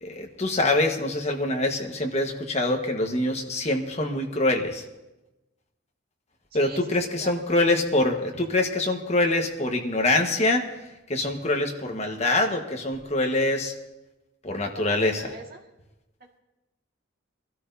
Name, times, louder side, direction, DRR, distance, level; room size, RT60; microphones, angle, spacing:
voice 1, 0.0-4.8 6.5-10.6 11.1-13.7 14.4-15.2, left 2 dB, 35° left, 3 dB, 1.3 m, -24 dB
voice 2, 6.5-6.8 7.2-7.6 14.7-15.6 16.2-16.3, right 2 dB, 50° right, 0 dB, 1.9 m, -41 dB
24.0 x 13.0 x 2.7 m, 1.0 s
head